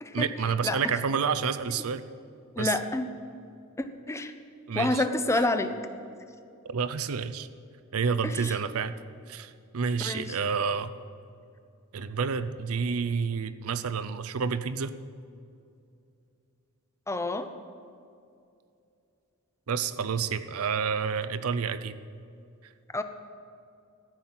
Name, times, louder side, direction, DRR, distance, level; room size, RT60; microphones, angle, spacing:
voice 1, 0.1-2.0 2.6-2.7 4.7-5.0 5.3-5.5 6.6-7.5 7.9-8.9 9.3-10.9 11.9-14.9 19.7-22.0, right 6 dB, 75° right, 13 dB, 0.5 m, -29 dB
voice 2, 2.6-3.1 3.8-4.3 4.7-5.7 8.2-8.6 10.0-10.4 17.1-17.5 22.9-23.0, left 2 dB, 15° left, 9 dB, 0.6 m, -28 dB
13.5 x 5.8 x 7.8 m, 2.5 s
head